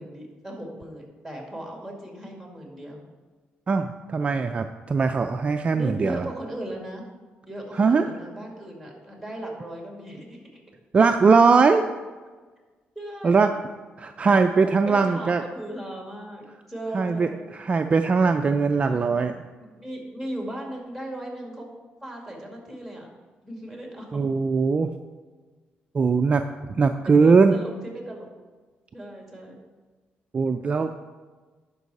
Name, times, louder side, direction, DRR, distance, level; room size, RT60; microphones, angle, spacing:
voice 1, 0.0-3.0 5.7-7.0 7.5-10.6 13.0-13.6 14.3-17.5 18.8-19.2 19.6-21.7 22.0-23.1 23.4-24.3 27.0-28.3 28.9-29.6 30.8-30.9, right 1 dB, 5° left, 0 dB, 2.1 m, -37 dB
voice 2, 3.7-6.2 7.8-8.1 10.9-11.8 13.2-13.5 14.0-15.4 16.9-19.3 24.1-24.9 25.9-27.6 30.3-30.9, right 4 dB, 35° right, 6 dB, 0.4 m, -20 dB
11.0 x 5.3 x 4.1 m, 1.3 s
cardioid pair, 115°, 4 cm